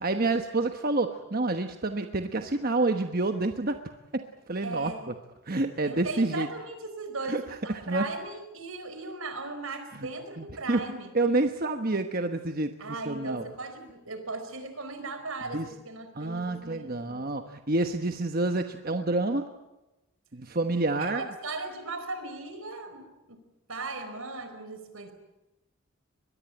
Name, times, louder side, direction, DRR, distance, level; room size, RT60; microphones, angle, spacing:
voice 1, 0.0-3.8 4.1-4.9 5.5-6.5 7.3-7.4 7.7-8.1 10.4-10.8 11.1-12.8 13.1-13.5 15.5-15.7 16.2-19.5 20.3-21.2, right 2 dB, 45° right, 6 dB, 1.2 m, -28 dB
voice 2, 4.6-5.1 5.8-11.2 12.8-17.3 21.0-23.4 23.7-25.1, right 3 dB, 85° right, 9 dB, 4.7 m, -38 dB
22.5 x 21.5 x 9.0 m, 1.0 s
head